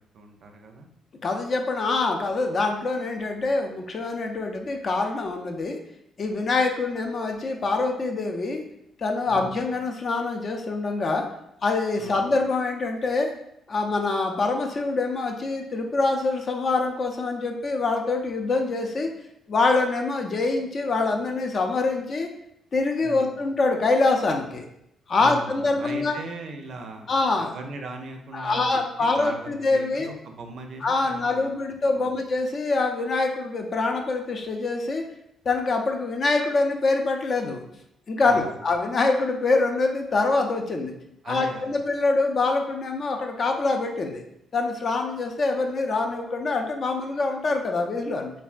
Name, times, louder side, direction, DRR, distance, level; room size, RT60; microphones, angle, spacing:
voice 1, 0.1-0.9 9.3-9.5 12.0-12.2 23.0-23.3 25.2-27.1 27.4-32.2 38.2-38.6 41.2-41.8, right 3 dB, 60° right, 4 dB, 0.4 m, -39 dB
voice 2, 1.2-5.8 6.2-8.6 9.0-11.2 11.6-13.3 13.7-19.1 19.5-22.3 22.7-24.6 25.1-26.2 27.1-27.6 28.3-30.1 30.8-35.0 35.5-37.6 38.1-40.9 41.3-44.2 44.5-48.3, left 3 dB, 45° left, 3 dB, 0.4 m, -25 dB
3.2 x 2.2 x 2.4 m, 0.77 s
cardioid pair, 90°, 0 cm